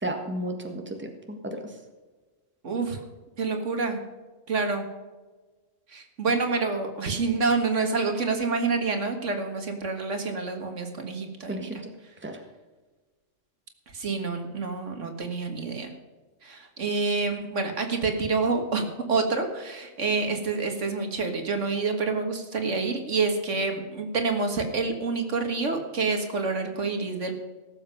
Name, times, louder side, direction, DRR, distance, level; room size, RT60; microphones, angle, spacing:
voice 1, 0.0-1.6 11.5-11.9 12.2-12.4, right 1 dB, 10° right, 4 dB, 1.5 m, -33 dB
voice 2, 2.6-3.0 3.4-4.0 4.5-4.9 5.9-11.7 13.9-15.9 16.4-27.3, right 4 dB, 70° right, 5 dB, 2.0 m, -27 dB
17.5 x 7.6 x 5.5 m, 1.3 s
omnidirectional pair, 1.3 m